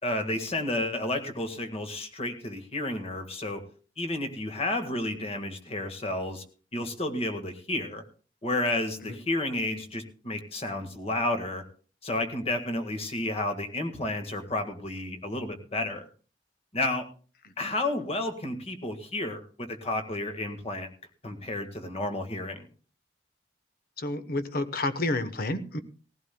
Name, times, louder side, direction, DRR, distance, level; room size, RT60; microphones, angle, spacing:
voice 1, 0.0-3.6 4.0-6.4 6.7-8.0 8.4-11.6 12.0-16.1 16.7-17.1 17.6-20.9 21.2-22.7, left 2 dB, 35° left, 7 dB, 1.7 m, -31 dB
voice 2, 24.0-25.8, left 2 dB, 60° left, 11 dB, 1.0 m, -30 dB
18.5 x 15.5 x 2.3 m, 0.39 s
head